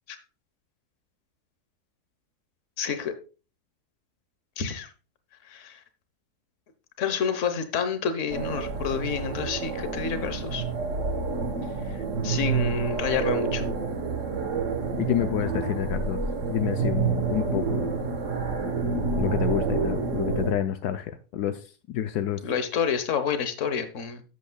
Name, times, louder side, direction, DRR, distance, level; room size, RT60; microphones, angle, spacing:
voice 1, 2.8-3.1 4.6-4.9 5.4-5.8 7.0-10.6 11.8-13.6 22.4-24.2, left 7 dB, 55° left, 10 dB, 1.3 m, -29 dB
sound 1, 8.3-20.5, right 4 dB, 55° right, 1.4 m, -28 dB
voice 2, 15.0-16.2 16.5-17.9 19.2-22.4, left 10 dB, 80° left, 9 dB, 1.2 m, -28 dB
12.0 x 8.2 x 2.3 m, 0.33 s
omnidirectional pair, 1.7 m